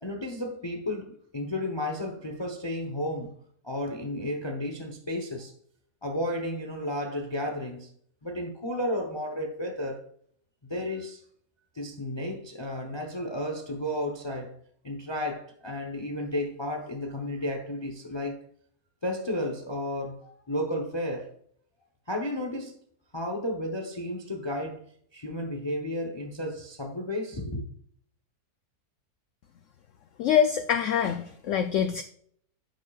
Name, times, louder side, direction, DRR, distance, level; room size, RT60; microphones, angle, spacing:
voice 1, 0.0-3.4 3.6-5.5 6.0-7.9 8.2-10.1 10.6-11.2 11.7-14.6 14.8-18.4 19.0-21.3 22.1-22.8 23.1-27.7, left 1 dB, 25° left, 0.7 m, -33 dB
voice 2, 30.2-32.0, left 8 dB, 70° left, 0.7 m, -25 dB
10.5 x 7.3 x 2.4 m
omnidirectional pair, 1.7 m